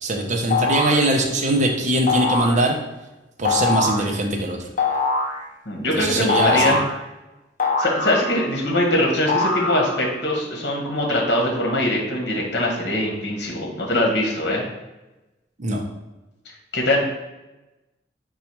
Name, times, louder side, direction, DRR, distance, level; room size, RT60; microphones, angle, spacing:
voice 1, 0.0-2.8 3.4-4.7 5.9-6.7 15.6-15.8, right 1 dB, 45° right, 2 dB, 0.6 m, -21 dB
sound 1, 0.5-1.1 2.1-2.6 3.5-4.1 4.8-5.4 6.3-7.0 7.6-8.6 9.3-10.1, left 3 dB, 45° left, 0.5 m, -22 dB
voice 2, 5.7-6.8 7.8-14.6 16.7-17.0, left 1 dB, 65° left, -1 dB, 1.1 m, -22 dB
4.0 x 2.3 x 4.5 m, 1.0 s
head